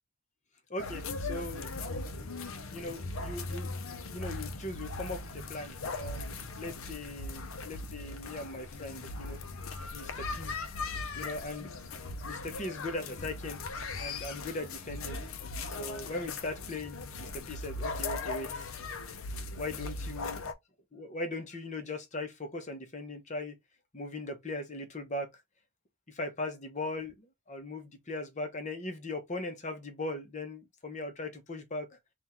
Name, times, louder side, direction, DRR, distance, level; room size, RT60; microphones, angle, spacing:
voice 1, 0.7-1.7 2.7-3.8 4.1-9.4 9.9-10.5 11.1-11.8 12.3-13.6 14.0-15.2 15.7-18.7 19.6-20.4 20.9-23.6 23.9-25.3 26.1-32.0, left 2 dB, 35° left, 0.9 m, -39 dB
sound 1, 0.8-20.5, left 3 dB, 75° left, 0.6 m, -39 dB
3.6 x 2.5 x 4.3 m
head